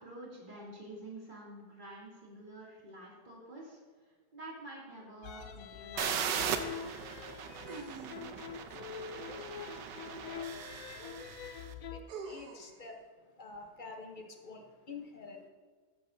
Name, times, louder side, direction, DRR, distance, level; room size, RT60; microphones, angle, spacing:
voice 1, 0.0-3.8 4.3-6.4, right 1 dB, 25° right, 2.8 m, -48 dB
sound 1, 5.2-12.0, left 7 dB, 65° left, 0.9 m, -45 dB
sound 2, 5.6-5.7 7.7-8.6 10.5-10.6 12.1-12.8, right 4 dB, 65° right, 1.5 m, -45 dB
sound 3, 6.0-11.6, right 7 dB, 90° right, 1.4 m, -38 dB
voice 2, 7.1-7.8 8.2-15.5, left 4 dB, 35° left, 0.9 m, -51 dB
13.5 x 9.0 x 2.8 m
omnidirectional pair, 1.9 m